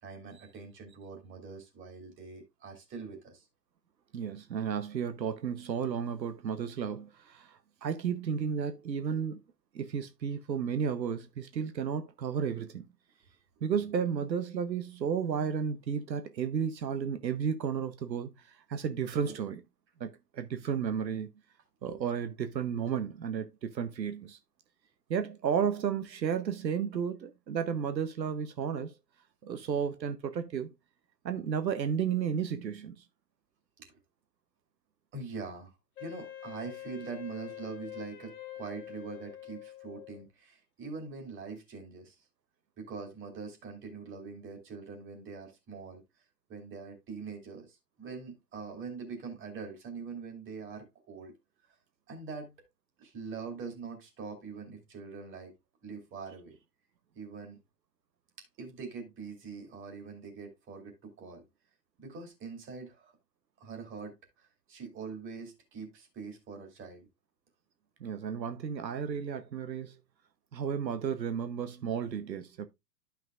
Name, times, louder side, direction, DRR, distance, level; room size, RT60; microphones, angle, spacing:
voice 1, 0.0-3.5 9.1-9.2 19.3-19.4 21.8-22.0 33.8-34.0 35.1-42.3 42.8-46.2 46.5-51.3 52.1-52.5 53.0-55.5 55.8-56.6 57.1-57.6 58.6-61.4 62.0-63.2 63.6-67.1, right 5 dB, 25° right, 2.6 m, -43 dB
voice 2, 4.1-9.4 9.7-12.8 13.6-18.3 18.7-19.6 20.0-21.3 21.8-24.4 25.1-28.9 29.4-30.7 31.2-32.9 68.0-70.0 70.5-72.7, right 7 dB, 85° right, 0.9 m, -33 dB
Wind instrument woodwind instrument, 36.0-40.2, left 11 dB, 60° left, 1.6 m, -45 dB
11.0 x 5.9 x 2.4 m
hypercardioid pair, 120°, 49 cm